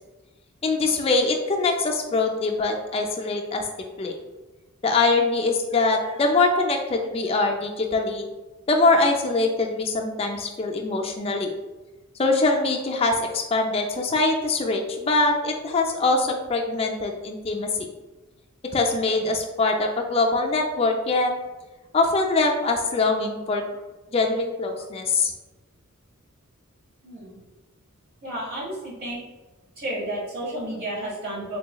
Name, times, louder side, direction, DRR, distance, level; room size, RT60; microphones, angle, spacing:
voice 1, 0.6-3.6 4.0-4.1 4.8-8.3 8.7-11.5 12.2-17.9 18.7-21.3 21.9-23.6 24.1-25.3, left 3 dB, 25° left, 2 dB, 0.3 m, -23 dB
voice 2, 27.0-27.4 28.2-29.2 29.8-31.6, right 1 dB, 45° right, -7 dB, 1.4 m, -32 dB
3.9 x 2.9 x 2.2 m, 1.2 s
head